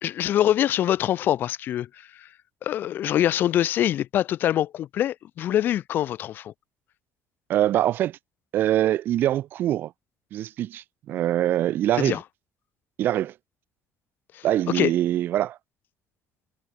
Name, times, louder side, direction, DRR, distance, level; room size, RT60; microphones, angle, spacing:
voice 1, 0.0-1.9 2.2-2.3 2.6-6.5 12.0-12.2 14.3-14.4 14.7-14.9, left 11 dB, 60° left, 1.0 m, -24 dB
voice 2, 7.5-8.2 8.5-9.9 10.3-12.2 13.0-13.3 14.4-15.6, right 12 dB, 65° right, 0.5 m, -23 dB
cardioid pair, 100°, 4 cm